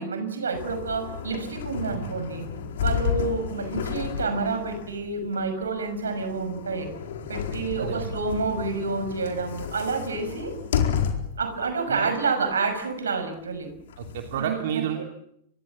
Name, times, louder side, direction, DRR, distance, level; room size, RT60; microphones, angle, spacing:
voice 1, 0.0-2.5 2.8-6.9 7.3-10.5 11.4-13.7 14.4-15.0, right 4 dB, 80° right, 9 dB, 6.0 m, -29 dB
sound 1, 0.5-11.5 12.0-12.1 13.5-14.4, left 8 dB, 65° left, 4.4 m, -32 dB
voice 2, 7.8-8.1 11.9-12.1 14.0-15.0, right 9 dB, 60° right, 4 dB, 3.0 m, -31 dB
29.0 x 24.5 x 7.5 m, 0.77 s
figure-of-eight pair, 100°, 0 cm